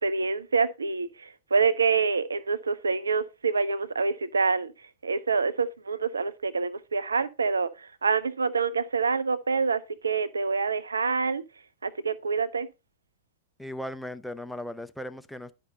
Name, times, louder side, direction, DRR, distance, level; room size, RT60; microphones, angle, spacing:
voice 1, 0.0-4.7 5.0-11.4 11.8-12.7, right 5 dB, 80° right, 0.6 m, -26 dB
voice 2, 13.6-15.5, left 1 dB, ahead, 0.7 m, -37 dB
11.0 x 5.4 x 3.9 m
figure-of-eight pair, 95°, 0 cm